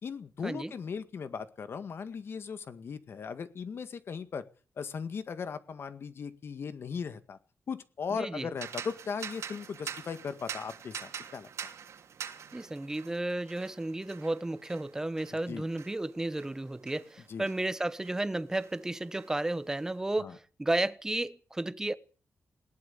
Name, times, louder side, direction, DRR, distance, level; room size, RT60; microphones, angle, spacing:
voice 1, 0.0-4.4 4.8-7.4 7.7-11.5 15.3-15.7 17.3-17.5 20.2-20.3, left 6 dB, 55° left, 1.9 m, -38 dB
voice 2, 8.1-8.5 12.5-21.9, right 2 dB, 10° right, 1.1 m, -33 dB
sound 1, 8.6-18.2 18.5-19.8, right 8 dB, 75° right, 3.1 m, -45 dB
20.5 x 19.0 x 7.1 m
wide cardioid pair, 180°, 5 cm